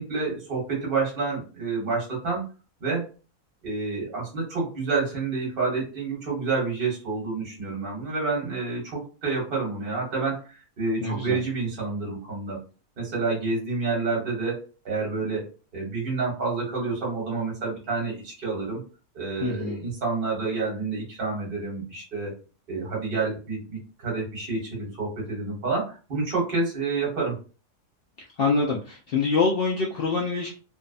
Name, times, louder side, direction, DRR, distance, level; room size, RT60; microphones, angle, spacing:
voice 1, 0.0-2.4 2.8-3.1 3.6-12.6 13.0-14.6 14.8-18.8 19.1-22.3 22.7-27.4, right 4 dB, 45° right, -2 dB, 1.2 m, -29 dB
voice 2, 11.0-11.4 19.4-19.8 28.4-30.6, left 4 dB, 65° left, -2 dB, 0.6 m, -25 dB
2.6 x 2.0 x 2.4 m, 0.34 s
omnidirectional pair, 1.5 m